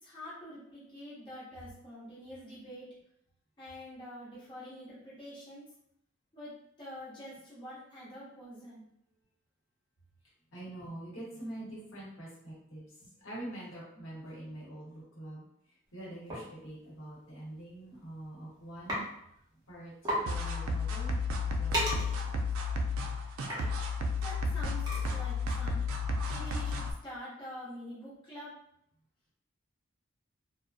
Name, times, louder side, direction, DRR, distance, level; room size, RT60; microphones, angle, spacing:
voice 1, 0.0-2.9 3.6-5.6 6.3-8.9 10.8-10.9 24.2-25.8 26.3-28.5, equal, 25° left, -10 dB, 0.8 m, -46 dB
voice 2, 10.5-12.8 13.2-15.4 15.9-19.0 19.7-19.9 20.2-21.2 21.6-22.3, right 1 dB, 70° left, -6 dB, 1.0 m, -45 dB
sound 1, 16.3-16.5 17.5-17.7 18.1-18.4 18.9-19.0 19.4-19.5 19.7-19.8 20.0-20.3 20.7-25.4, equal, 20° right, 0.7 m, -37 dB
sound 2, 20.3-26.9, left 3 dB, 75° right, 0.4 m, -32 dB
2.4 x 2.1 x 2.4 m, 0.73 s
head